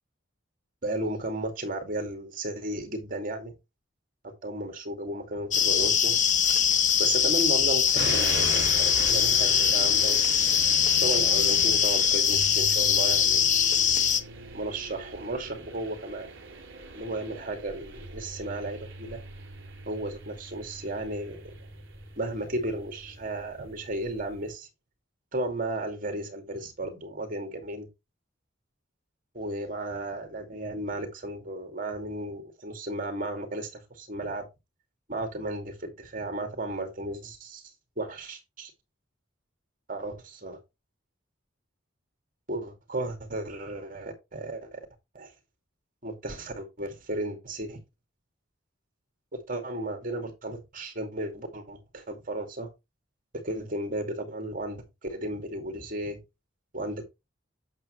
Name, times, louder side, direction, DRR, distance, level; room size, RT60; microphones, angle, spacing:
voice 1, 0.8-3.5 4.4-6.2 7.0-10.2 11.0-13.4 14.5-16.3 16.9-19.2 19.9-21.5 22.2-24.7 25.3-27.9 29.3-34.5 35.1-37.6 38.0-38.7 39.9-40.6 42.5-44.8 45.1-45.3 46.0-47.8 49.3-52.7 53.4-56.2 56.7-57.0, right 1 dB, 45° right, 2.3 m, -34 dB
sound 1, 5.5-14.2, left 8 dB, 40° left, 0.9 m, -22 dB
sound 2, 7.9-24.5, right 3 dB, 70° right, 2.7 m, -40 dB
8.8 x 6.7 x 3.2 m
head